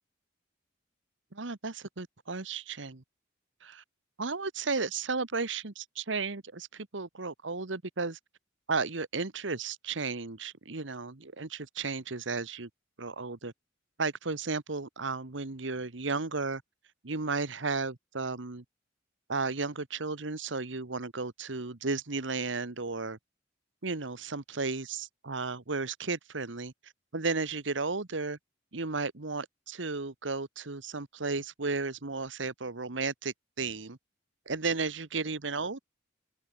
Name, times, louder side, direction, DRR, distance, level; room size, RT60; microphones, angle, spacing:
voice 1, 1.3-3.0 3.6-3.8 4.2-8.2 8.7-12.7 13.0-13.5 14.0-16.6 17.0-18.6 19.3-23.2 23.8-28.4 28.7-34.0 34.4-35.8, right 4 dB, 80° right, 1.4 m, -34 dB
open air
head